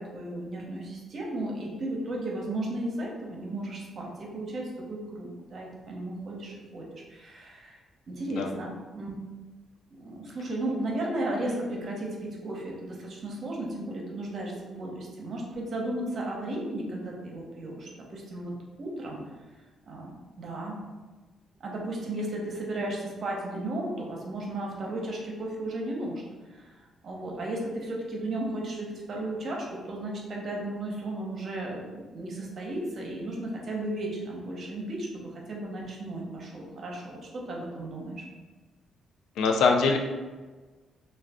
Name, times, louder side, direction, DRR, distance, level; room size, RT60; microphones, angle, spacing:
voice 1, 0.0-7.8 8.1-9.1 10.0-18.5 18.8-19.2 19.9-20.8 21.6-26.2 26.5-38.2, right 1 dB, 50° right, -1 dB, 0.7 m, -35 dB
voice 2, 39.4-40.0, left 4 dB, 85° left, 3 dB, 0.3 m, -23 dB
2.3 x 2.3 x 3.5 m, 1.3 s
cardioid pair, 90°, 0 cm